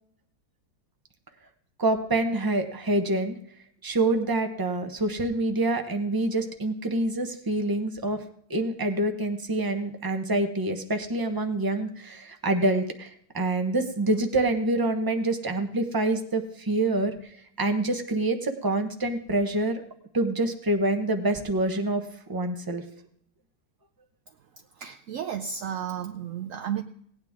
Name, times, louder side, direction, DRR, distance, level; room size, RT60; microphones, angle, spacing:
voice 1, 1.8-3.4 3.8-8.2 8.5-17.1 17.6-19.8 20.1-22.0 22.3-22.8, right 2 dB, 15° right, 5 dB, 0.9 m, -26 dB
voice 2, 24.7-26.8, right 8 dB, 65° right, 6 dB, 0.9 m, -33 dB
17.5 x 9.6 x 3.6 m, 0.68 s
omnidirectional pair, 1.7 m